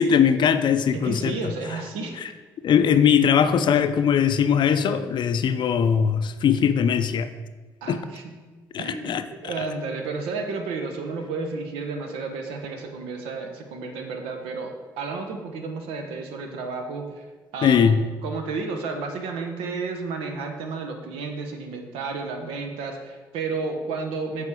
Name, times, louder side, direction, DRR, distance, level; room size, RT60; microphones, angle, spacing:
voice 1, 0.0-1.3 2.6-7.3 7.9-8.0 8.7-9.5 17.6-18.0, left 7 dB, 55° left, 11 dB, 0.4 m, -20 dB
voice 2, 0.9-2.1 7.8-8.3 8.8-17.2 17.5-18.0 18.2-24.5, right 4 dB, 80° right, 4 dB, 0.8 m, -32 dB
6.8 x 3.7 x 4.8 m, 1.3 s
hypercardioid pair, 55°, 9 cm